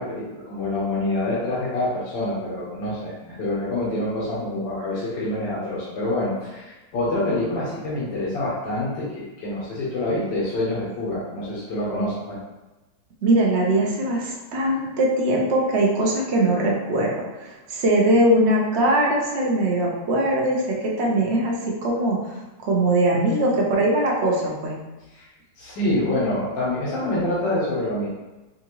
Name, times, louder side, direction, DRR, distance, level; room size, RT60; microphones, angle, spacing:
voice 1, 0.0-12.4 25.1-25.3 25.6-28.1, left 1 dB, 85° left, -8 dB, 1.7 m, -26 dB
voice 2, 13.2-22.3 22.6-24.7, right 1 dB, 50° right, -2 dB, 0.9 m, -21 dB
5.6 x 2.5 x 3.0 m, 1.1 s
omnidirectional pair, 1.9 m